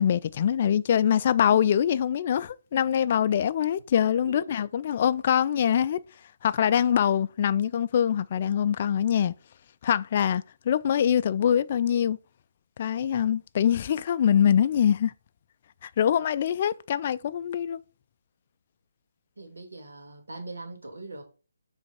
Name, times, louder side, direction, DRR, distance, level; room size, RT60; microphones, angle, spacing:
voice 1, 0.0-6.0 6.4-9.3 9.8-12.2 12.8-15.1 15.8-17.8, left 9 dB, 35° left, 0.3 m, -24 dB
voice 2, 19.4-21.2, right 2 dB, 80° right, 2.2 m, -41 dB
5.1 x 3.4 x 5.6 m
figure-of-eight pair, 155°, 0 cm